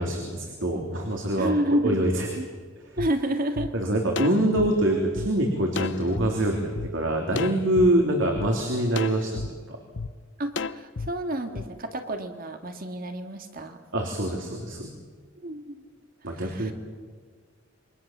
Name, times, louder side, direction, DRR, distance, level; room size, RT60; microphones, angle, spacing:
voice 1, 0.0-1.5 1.8-2.3 3.7-9.8 13.9-14.9 16.2-16.7, right 1 dB, 70° right, 1 dB, 3.4 m, -25 dB
voice 2, 1.4-2.1 2.4-2.5 3.0-3.7 10.4-13.8 15.4-15.8 16.3-16.7, right 1 dB, 45° right, 6 dB, 1.9 m, -29 dB
sound 1, 3.0-3.1 3.6-3.7 4.2-5.3 5.8-6.3 6.8-6.9 7.4-7.9 8.4-8.5 9.0-9.5 10.0-10.1 10.6-11.1 11.6-11.7, left 4 dB, 65° left, 0.7 m, -32 dB
28.0 x 24.0 x 7.4 m, 1.6 s
head